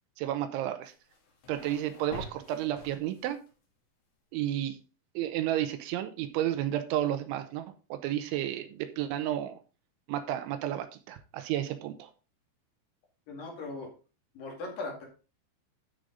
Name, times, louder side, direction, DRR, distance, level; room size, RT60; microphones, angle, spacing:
voice 1, 0.2-0.9 1.5-3.4 4.3-4.8 5.1-9.6 10.1-12.1, right 12 dB, 80° right, 9 dB, 3.2 m, -32 dB
sound 1, 0.9-3.5, left 3 dB, 75° left, 4.8 m, -47 dB
voice 2, 13.3-13.9 14.4-15.1, left 3 dB, 55° left, 0 dB, 3.5 m, -39 dB
12.5 x 5.3 x 3.9 m, 0.33 s
omnidirectional pair, 5.5 m